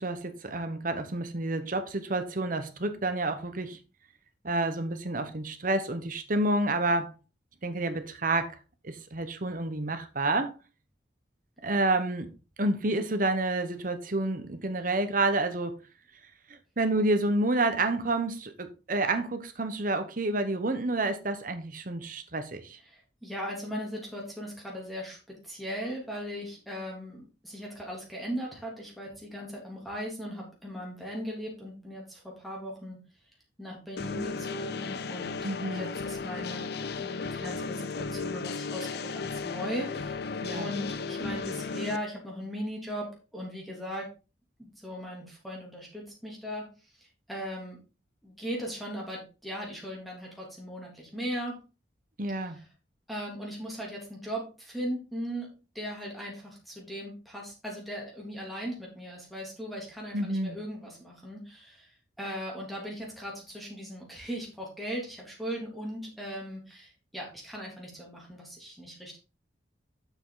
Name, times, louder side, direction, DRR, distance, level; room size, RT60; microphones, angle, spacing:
voice 1, 0.0-3.8 4.4-7.1 7.6-8.6 8.8-10.5 11.6-12.3 12.6-15.7 16.8-22.8 35.4-35.9 40.4-40.7 52.2-52.6 60.1-60.6, right 2 dB, 50° right, 1.1 m, -29 dB
voice 2, 22.8-25.2 25.4-33.0 33.6-35.4 35.7-44.1 44.6-46.7 47.0-47.8 48.2-51.6 52.6-52.7 53.1-69.2, equal, ahead, 3.1 m, -38 dB
sound 1, 34.0-42.0, left 4 dB, 60° left, 0.6 m, -35 dB
7.2 x 6.7 x 4.0 m
head